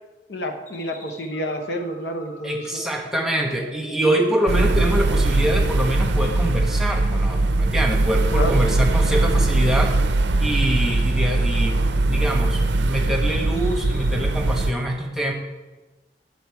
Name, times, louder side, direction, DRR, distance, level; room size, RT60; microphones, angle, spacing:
voice 1, 0.3-2.8 8.3-8.6, equal, 70° left, 4 dB, 1.0 m, -29 dB
sound 1, 0.7-5.6 6.0-6.4 6.8-7.3 7.7-8.1 8.5-9.0 9.4-9.9 10.2-10.7 11.0-11.5 11.9-12.4 12.7-13.2 13.6-14.1, equal, 45° left, 2.1 m, -44 dB
voice 2, 2.4-10.0 10.4-11.8 12.0-15.3, right 1 dB, 5° right, 0 dB, 1.1 m, -24 dB
sound 2, 4.5-14.7, right 2 dB, 75° right, 0.6 m, -20 dB
10.5 x 7.0 x 4.7 m, 1.2 s
head